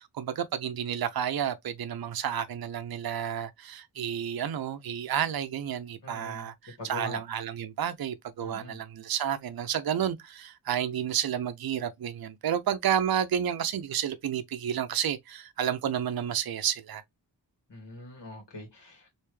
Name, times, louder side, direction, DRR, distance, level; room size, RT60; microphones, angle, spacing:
voice 1, 0.0-17.0, right 9 dB, 55° right, 0.5 m, -31 dB
voice 2, 6.0-6.5 6.8-7.2 8.4-8.8 17.7-19.2, left 1 dB, 75° left, 1.7 m, -42 dB
3.3 x 2.7 x 3.1 m
wide cardioid pair, 100°, 43 cm